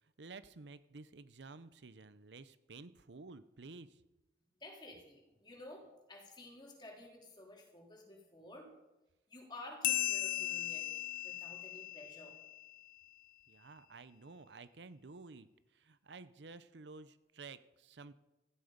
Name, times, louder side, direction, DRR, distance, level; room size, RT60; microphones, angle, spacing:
voice 1, 0.2-4.0 13.5-18.1, right 3 dB, 85° right, 14 dB, 0.7 m, -52 dB
voice 2, 4.6-8.7 9.3-10.9 11.2-12.3, left 1 dB, 25° left, -1 dB, 3.7 m, -52 dB
sound 1, 9.8-12.9, left 15 dB, 50° left, 0.4 m, -37 dB
16.5 x 14.5 x 5.2 m, 1.0 s
head